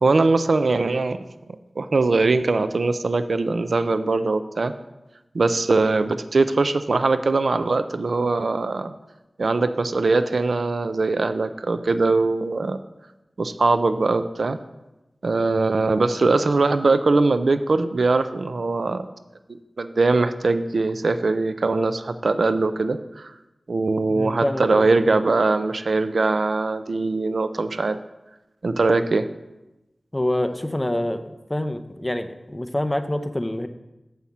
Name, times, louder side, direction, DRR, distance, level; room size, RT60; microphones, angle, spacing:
voice 1, 0.0-1.2 1.8-4.7 5.3-8.9 9.4-12.8 13.4-14.6 15.2-19.1 19.8-23.3 23.7-28.0 28.6-29.3, right 3 dB, 80° right, 11 dB, 0.4 m, -21 dB
voice 2, 24.1-24.9 30.1-33.7, left 1 dB, 15° left, 8 dB, 0.7 m, -26 dB
7.9 x 5.6 x 7.2 m, 0.99 s
wide cardioid pair, 70°, 0 cm